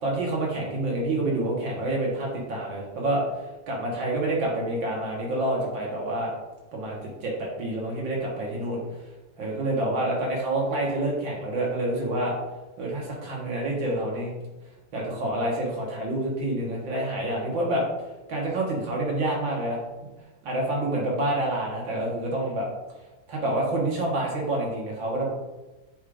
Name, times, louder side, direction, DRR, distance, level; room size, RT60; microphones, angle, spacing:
voice 1, 0.0-3.2 3.7-6.3 6.7-8.8 9.4-12.4 12.8-14.3 14.9-17.8 18.3-19.8 20.4-22.7 23.3-25.3, right 1 dB, 85° right, -3 dB, 2.0 m, -27 dB
9.2 x 4.9 x 2.5 m, 1.1 s
omnidirectional pair, 2.1 m